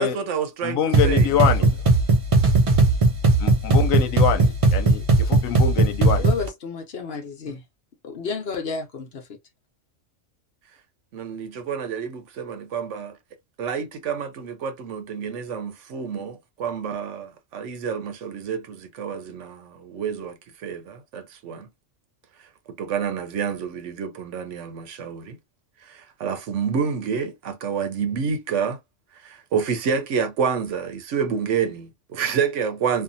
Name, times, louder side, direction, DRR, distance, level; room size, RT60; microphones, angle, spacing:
voice 1, 0.0-1.5 11.1-13.2 13.6-20.4 20.6-21.7 22.7-25.4 25.8-28.8 29.2-33.0, right 6 dB, 70° right, 0.9 m, -28 dB
voice 2, 0.6-1.8 3.4-6.3, left 9 dB, 80° left, 1.1 m, -24 dB
sound 1, 0.9-6.5, right 2 dB, 50° right, 0.4 m, -18 dB
voice 3, 6.2-7.6 8.0-9.4, left 5 dB, 55° left, 0.9 m, -31 dB
2.7 x 2.4 x 2.6 m
omnidirectional pair, 1.4 m